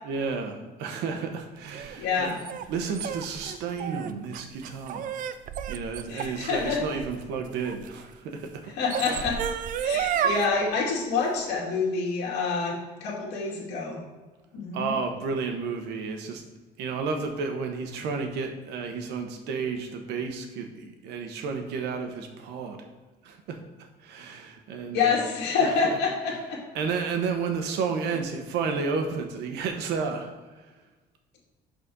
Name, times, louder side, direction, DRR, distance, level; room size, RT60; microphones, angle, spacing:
voice 1, 0.0-2.4 2.7-5.2 5.7-8.6 9.0-9.3 14.7-16.4 16.8-22.8 23.2-23.6 24.0-25.2 25.6-26.0 26.7-30.3 30.6-30.7, right 5 dB, 85° right, 5 dB, 1.1 m, -32 dB
sound 1, 1.7-7.9 8.6-10.4, right 9 dB, 50° right, 0.5 m, -31 dB
voice 2, 2.0-2.4 6.1-6.8 8.8-9.4 9.8-12.7 13.0-14.0 14.5-14.9 24.9-26.6, left 5 dB, 80° left, -3 dB, 2.2 m, -27 dB
6.2 x 4.2 x 5.3 m, 1.3 s
cardioid pair, 110°, 17 cm